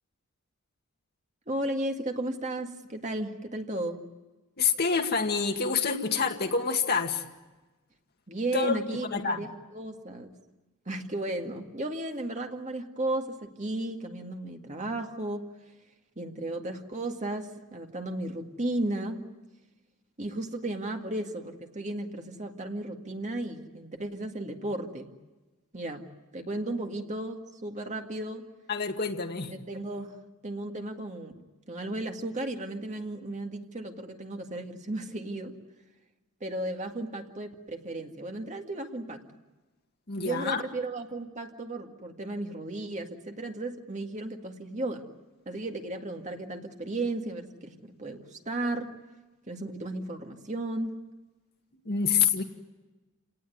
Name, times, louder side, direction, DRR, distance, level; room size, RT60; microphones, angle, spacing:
voice 1, 1.5-4.0 8.3-10.3 10.9-15.4 16.2-19.2 20.2-25.1 25.7-26.1 26.3-28.5 29.5-30.2 30.4-31.3 31.7-35.6 36.4-39.2 40.2-45.0 45.5-48.9 49.5-51.0, right 1 dB, 35° right, 4 dB, 2.0 m, -34 dB
voice 2, 4.6-7.2 8.5-8.8 9.1-9.5 28.7-29.5 40.1-40.6 51.9-52.4, left 6 dB, 45° left, 4 dB, 1.9 m, -27 dB
29.0 x 18.5 x 9.3 m, 1.2 s
head